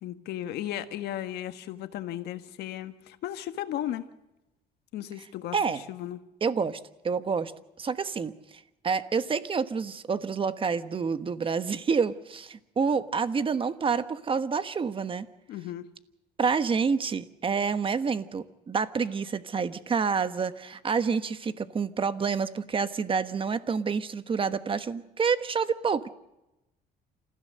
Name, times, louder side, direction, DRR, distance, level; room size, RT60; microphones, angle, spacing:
voice 1, 0.0-4.1 4.9-5.6 5.9-6.2 15.5-15.9, left 12 dB, 75° left, 10 dB, 1.5 m, -35 dB
voice 2, 6.4-7.5 7.8-8.3 8.8-15.3 16.4-26.1, right 5 dB, 30° right, 12 dB, 1.2 m, -28 dB
28.0 x 15.0 x 6.6 m, 0.93 s
cardioid pair, 110°, 17 cm